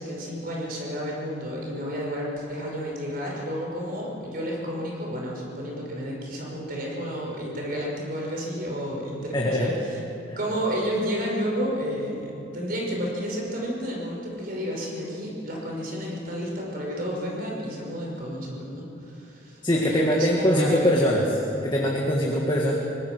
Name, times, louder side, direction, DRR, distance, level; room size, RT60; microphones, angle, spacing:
voice 1, 0.0-10.0 10.4-21.1, equal, 45° right, -2 dB, 5.6 m, -31 dB
voice 2, 9.3-9.7 10.3-10.4 19.6-21.4 21.6-22.7, equal, 25° left, -2 dB, 1.9 m, -22 dB
24.0 x 19.5 x 6.3 m, 2.8 s
head